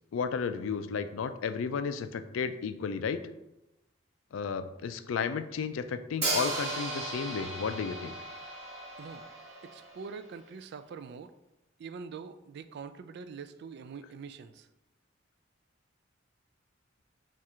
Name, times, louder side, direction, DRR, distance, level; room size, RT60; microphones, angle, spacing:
voice 1, 0.1-3.3 4.3-8.1, left 6 dB, 80° left, 11 dB, 0.4 m, -33 dB
Hi-hat, 6.2-10.2, right 2 dB, 35° right, 1.3 m, -36 dB
voice 2, 9.6-11.3 11.8-14.7, right 5 dB, 60° right, 11 dB, 0.3 m, -44 dB
4.3 x 2.5 x 4.7 m, 0.93 s
head